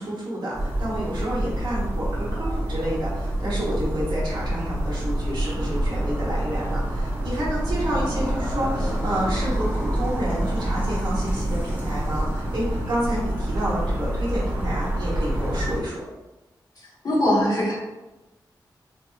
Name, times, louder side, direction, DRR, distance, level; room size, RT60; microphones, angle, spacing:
voice 1, 0.0-16.0, equal, 70° right, -6 dB, 1.2 m, -29 dB
sound 1, 0.5-15.8, right 1 dB, 20° right, 0.8 m, -27 dB
voice 2, 17.0-17.7, left 1 dB, 55° left, -7 dB, 1.4 m, -20 dB
4.2 x 2.6 x 2.4 m, 1.0 s
wide cardioid pair, 175°, 8 cm